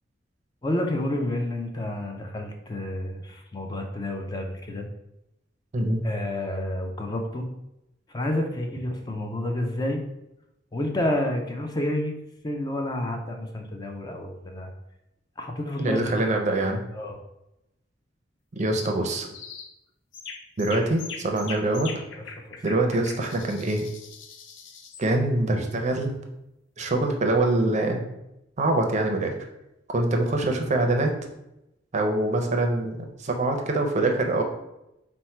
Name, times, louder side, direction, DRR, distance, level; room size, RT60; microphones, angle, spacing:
voice 1, 0.6-4.9 6.0-7.5 8.1-10.0 10.7-12.2 12.4-14.7 15.4-16.2 16.9-17.2 22.1-22.2 22.5-22.6, left 1 dB, 20° left, 3 dB, 0.4 m, -29 dB
voice 2, 15.8-16.8 18.6-19.3 20.6-21.9 22.6-23.8 25.0-26.2 26.8-28.1 28.6-29.3 29.9-31.1 31.9-34.4, right 2 dB, 40° right, 3 dB, 0.5 m, -24 dB
sound 1, 18.6-19.0 19.3-19.7 20.1-25.1, left 6 dB, 80° left, 0.5 m, -41 dB
4.4 x 2.1 x 4.3 m, 0.87 s
head